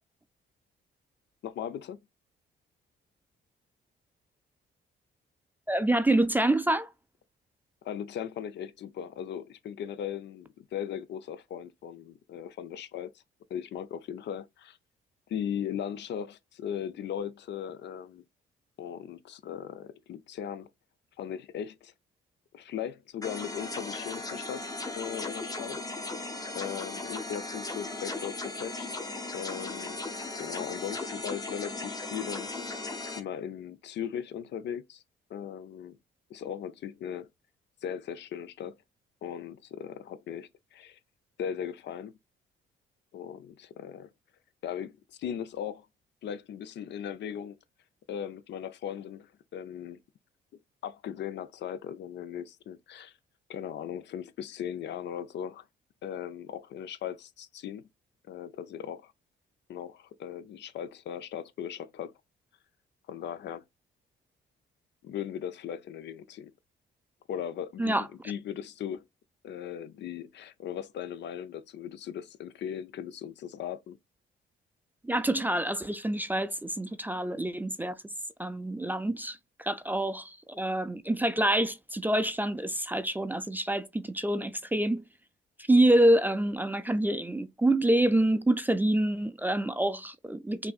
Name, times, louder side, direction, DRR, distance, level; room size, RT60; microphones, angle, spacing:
voice 1, 1.4-2.0 7.8-13.2 13.5-14.8 15.3-18.2 18.8-20.7 21.2-21.9 22.5-25.8 26.5-28.9 29.3-30.0 30.4-32.5 33.2-35.0 35.3-36.0 36.3-37.3 37.8-38.8 39.2-41.0 41.4-42.1 43.1-44.1 44.6-44.9 45.2-45.9 46.2-47.6 48.1-50.0 50.8-53.1 53.5-55.6 56.0-57.8 58.3-59.1 59.7-62.1 63.1-63.6 65.0-66.5 67.3-69.1 69.4-74.0, left 9 dB, 60° left, 0.5 m, -38 dB
voice 2, 5.7-6.9 67.8-68.1 75.0-78.0 78.4-85.0 85.7-90.7, right 1 dB, 10° right, 0.3 m, -26 dB
sound 1, 23.2-33.2, left 2 dB, 20° left, 0.7 m, -37 dB
5.6 x 2.6 x 2.3 m
cardioid pair, 90°, 20 cm